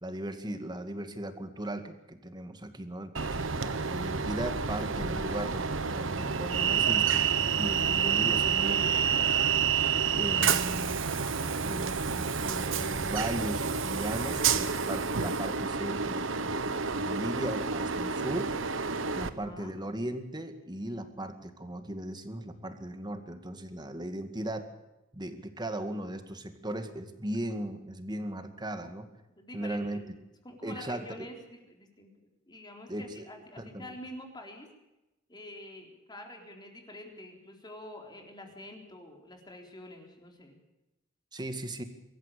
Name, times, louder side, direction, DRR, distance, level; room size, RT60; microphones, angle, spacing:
voice 1, 0.0-9.3 10.1-11.0 11.6-18.6 19.2-24.7 25.1-29.1 29.5-30.0 30.6-31.3 32.9-33.3 33.6-33.9 41.3-41.8, right 1 dB, 20° right, 8 dB, 2.1 m, -37 dB
Train, 3.1-19.3, right 6 dB, 75° right, 1.2 m, -29 dB
voice 2, 14.2-14.9 19.2-19.7 29.4-30.1 30.4-34.7 35.3-40.6, left 1 dB, 20° left, 2 dB, 4.0 m, -47 dB
24.0 x 14.5 x 8.6 m, 0.95 s
head